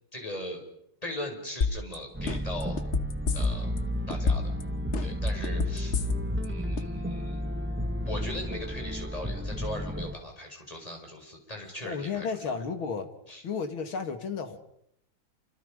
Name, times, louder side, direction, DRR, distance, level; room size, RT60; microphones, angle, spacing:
voice 1, 0.1-0.6 1.0-2.8 3.3-3.7 4.1-4.5 5.0-6.1 6.4-7.4 8.0-12.6 13.3-13.4, left 1 dB, 15° left, 2 dB, 5.9 m, -39 dB
sound 1, 1.6-2.0 2.3-3.8 4.1-4.6 4.9-6.5 6.8-6.9, left 5 dB, 45° left, 1.1 m, -27 dB
sound 2, 2.1-10.2, equal, 10° right, 0.7 m, -32 dB
voice 2, 11.8-13.1 13.4-14.6, left 5 dB, 75° left, 7 dB, 3.0 m, -33 dB
29.0 x 26.5 x 5.2 m, 0.76 s
omnidirectional pair, 2.3 m